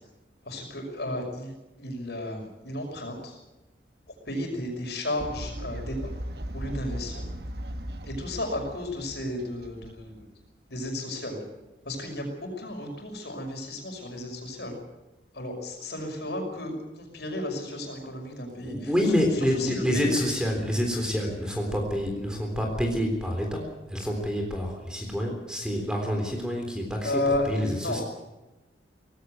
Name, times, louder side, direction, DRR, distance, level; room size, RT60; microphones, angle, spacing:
voice 1, 0.4-3.4 4.2-6.1 6.5-7.2 8.0-10.3 10.7-11.4 11.8-14.8 15.3-18.9 19.4-20.2 27.0-28.0, left 1 dB, 65° left, 3 dB, 5.9 m, -33 dB
Fowl, 5.2-10.5, equal, 60° right, 1.4 m, -37 dB
voice 2, 18.6-28.0, equal, 5° right, 2 dB, 3.6 m, -28 dB
18.5 x 16.0 x 9.4 m, 1.0 s
head